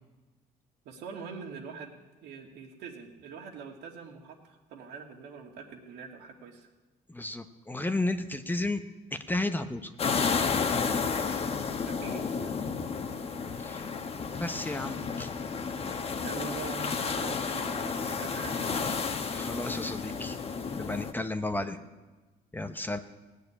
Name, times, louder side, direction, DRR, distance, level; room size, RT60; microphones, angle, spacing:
voice 1, 0.8-6.7 11.8-12.5 16.2-19.1 21.5-21.8, right 5 dB, 85° right, 1 dB, 2.4 m, -44 dB
voice 2, 7.1-8.8 9.1-9.9 13.6-13.9 14.3-15.3 19.3-20.4 20.7-21.8 22.5-23.0, left 2 dB, 10° left, 8 dB, 0.8 m, -33 dB
sound 1, 10.0-21.1, left 5 dB, 35° left, 1.1 m, -32 dB
17.0 x 6.7 x 9.9 m, 1.2 s
cardioid pair, 110°, 17 cm